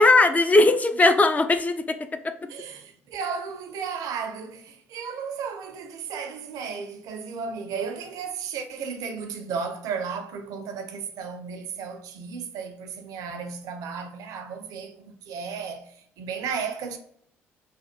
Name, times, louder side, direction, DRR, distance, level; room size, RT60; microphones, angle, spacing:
voice 1, 0.0-2.5, left 2 dB, 20° left, 0.4 m, -19 dB
voice 2, 2.5-15.9 16.2-17.0, right 6 dB, 60° right, 0.5 m, -34 dB
3.3 x 2.2 x 2.8 m
figure-of-eight pair, 50°, 7 cm